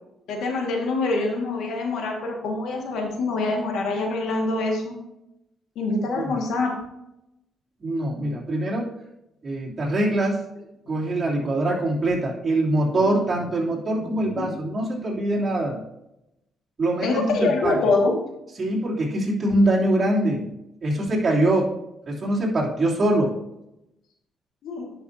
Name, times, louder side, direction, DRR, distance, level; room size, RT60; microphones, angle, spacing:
voice 1, 0.3-5.0 5.8-6.7 11.1-11.4 12.9-13.1 14.0-14.5 17.0-18.1 24.6-24.9, left 3 dB, 75° left, 2 dB, 1.8 m, -25 dB
voice 2, 7.8-8.9 9.4-10.4 10.9-15.8 16.8-17.8 18.6-20.5 20.8-21.7 22.1-23.3, right 1 dB, 35° right, -5 dB, 3.0 m, -23 dB
11.0 x 5.8 x 2.8 m, 0.86 s
cardioid pair, 90°, 0 cm